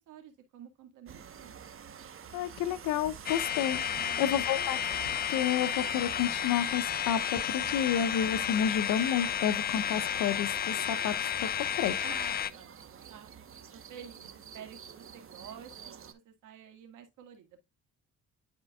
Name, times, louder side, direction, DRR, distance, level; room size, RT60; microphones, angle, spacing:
voice 1, 0.0-1.5 3.9-4.4 12.0-13.3 13.7-17.6, right 8 dB, 90° right, 1.9 m, -50 dB
sound 1, 1.1-16.1, right 7 dB, 45° right, 1.0 m, -49 dB
voice 2, 2.3-4.9 5.3-11.1 11.4-11.5 11.8-12.0, left 9 dB, 85° left, 0.7 m, -30 dB
sound 2, 3.3-12.5, left 8 dB, 30° left, 0.4 m, -32 dB
10.5 x 4.5 x 2.3 m
cardioid pair, 90°, 30 cm